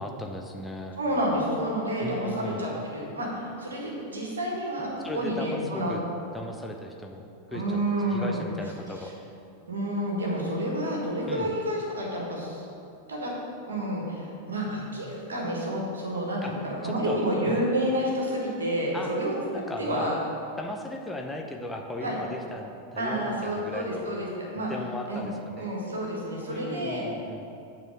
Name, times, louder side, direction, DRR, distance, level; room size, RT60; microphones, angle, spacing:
voice 1, 0.0-1.0 2.0-2.6 5.0-6.0 6.3-7.2 7.5-7.8 8.1-9.1 11.3-11.5 16.4-16.5 16.8-17.6 18.9-19.1 19.5-20.1 20.6-24.1 24.5-25.7 26.5-27.5, left 1 dB, 10° left, 2 dB, 0.7 m, -37 dB
voice 2, 1.0-6.0 7.5-8.4 9.7-12.6 13.1-13.3 13.7-19.3 19.8-20.2 22.0-22.2 23.0-24.7 25.1-25.2 25.6-27.0, equal, 70° right, -2 dB, 1.9 m, -29 dB
8.8 x 4.2 x 6.6 m, 2.6 s
figure-of-eight pair, 90°, 0 cm